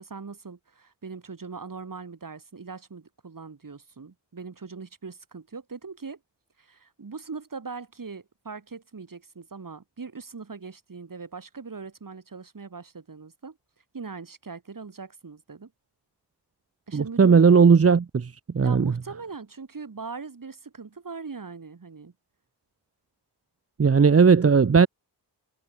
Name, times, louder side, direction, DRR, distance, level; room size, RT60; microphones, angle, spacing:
voice 1, 0.0-6.2 6.6-13.6 13.9-15.7 16.9-17.4 18.6-22.1, right 4 dB, 50° right, 4.5 m, -40 dB
voice 2, 16.9-18.8 23.8-24.9, right 5 dB, 35° right, 0.8 m, -17 dB
wide cardioid pair, 80°, 42 cm